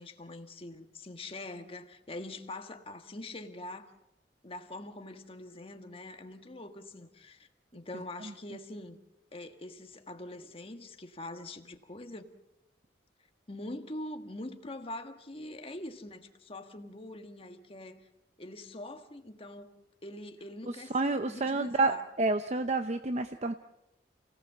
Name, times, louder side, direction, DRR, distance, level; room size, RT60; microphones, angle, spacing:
voice 1, 0.0-3.9 4.4-9.0 9.3-12.3 13.5-18.1 18.4-19.8 20.0-22.0, left 1 dB, 35° left, 1.6 m, -44 dB
voice 2, 20.7-23.5, right 3 dB, 40° right, 0.8 m, -29 dB
29.0 x 17.5 x 7.3 m
head